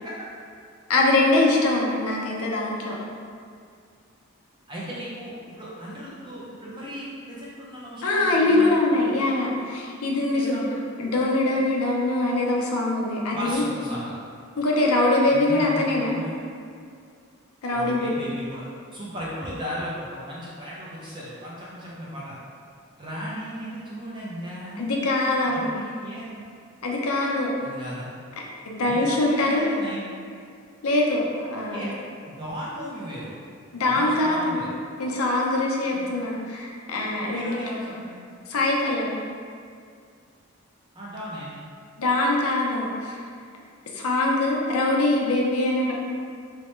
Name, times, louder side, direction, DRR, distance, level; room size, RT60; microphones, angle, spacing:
voice 1, 0.9-3.0 8.0-10.6 11.0-13.6 14.6-16.2 17.6-18.1 24.8-25.8 26.8-27.5 28.6-29.7 30.8-31.9 33.7-34.6 35.0-37.9 38.5-39.2 42.0-43.2 43.9-45.9, left 2 dB, 80° left, -2 dB, 0.5 m, -23 dB
voice 2, 4.7-8.8 9.1-9.4 10.3-10.8 13.3-14.1 15.3-16.4 17.7-18.6 18.9-22.4 23.0-25.0 25.5-26.4 27.6-28.1 28.8-30.0 31.7-31.9 32.3-33.3 33.9-34.7 35.9-36.1 37.3-38.2 40.9-41.5, equal, 20° right, -7 dB, 0.5 m, -36 dB
2.9 x 2.1 x 3.0 m, 2.2 s
head